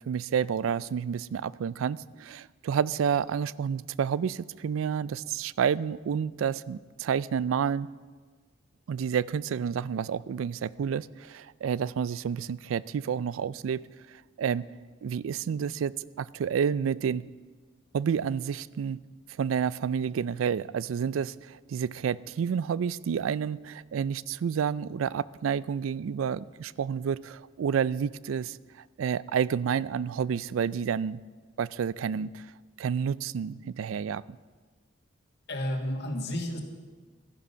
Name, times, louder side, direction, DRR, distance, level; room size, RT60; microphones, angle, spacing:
voice 1, 0.1-7.9 8.9-13.8 14.4-14.7 15.0-17.2 17.9-19.0 19.4-28.6 29.0-31.2 31.6-32.5 32.8-34.2, right 7 dB, 90° right, 20 dB, 0.3 m, -29 dB
voice 2, 35.5-36.6, left 1 dB, 60° left, 3 dB, 1.7 m, -31 dB
13.0 x 10.5 x 5.6 m, 1.4 s
head